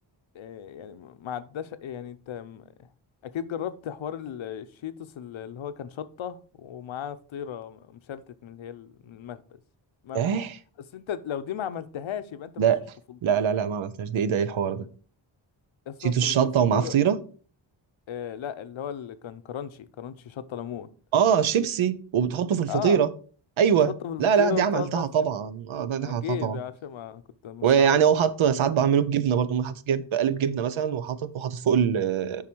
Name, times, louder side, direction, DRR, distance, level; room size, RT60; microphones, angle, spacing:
voice 1, 0.3-2.9 3.2-9.4 10.0-10.3 10.9-12.7 13.1-13.2 15.9-16.4 16.7-17.0 18.1-20.9 22.7-23.0 23.8-25.3 26.0-28.0, left 9 dB, 80° left, 0.8 m, -35 dB
voice 2, 10.1-10.6 12.6-12.8 13.2-14.8 16.0-17.2 21.1-23.1 23.6-23.9 24.2-26.6 27.6-32.4, right 8 dB, 85° right, 0.8 m, -23 dB
7.4 x 5.6 x 4.5 m
wide cardioid pair, 125°, 46 cm